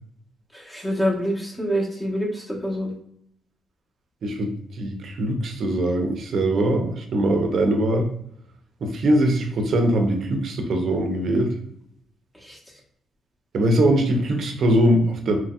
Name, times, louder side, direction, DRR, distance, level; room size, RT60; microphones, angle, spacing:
voice 1, 0.7-2.9 12.5-12.6, equal, 10° left, -4 dB, 1.0 m, -26 dB
voice 2, 4.2-8.1 8.8-11.5 13.5-15.4, right 1 dB, 60° right, 4 dB, 0.6 m, -21 dB
2.9 x 2.7 x 2.3 m, 0.73 s
cardioid pair, 90°, 0 cm